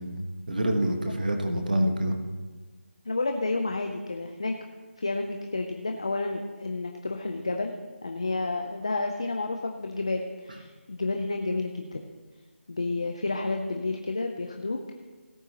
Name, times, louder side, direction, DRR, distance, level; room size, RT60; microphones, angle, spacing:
voice 1, 0.0-2.2, right 1 dB, 40° right, 5 dB, 1.3 m, -27 dB
voice 2, 3.1-4.6 5.0-7.7 8.0-12.0 12.7-14.8, left 3 dB, 25° left, 4 dB, 0.5 m, -30 dB
17.5 x 8.7 x 2.9 m, 1.3 s
figure-of-eight pair, 180°, 7 cm